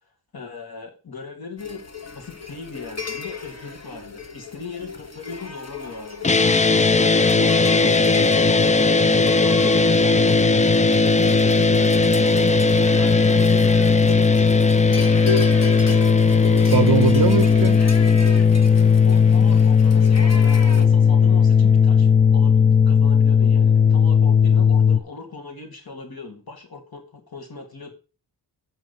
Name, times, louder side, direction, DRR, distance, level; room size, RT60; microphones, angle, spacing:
voice 1, 0.0-1.8 2.1-10.9 11.2-14.0 19.0-27.9, left 4 dB, 60° left, 2.5 m, -39 dB
sound 1, 1.6-20.9, left 5 dB, 40° left, 1.4 m, -33 dB
sound 2, 6.2-25.0, left 5 dB, 20° left, 0.4 m, -16 dB
voice 2, 15.8-17.8, right 8 dB, 55° right, 0.6 m, -23 dB
7.7 x 5.8 x 7.3 m
wide cardioid pair, 75°, 41 cm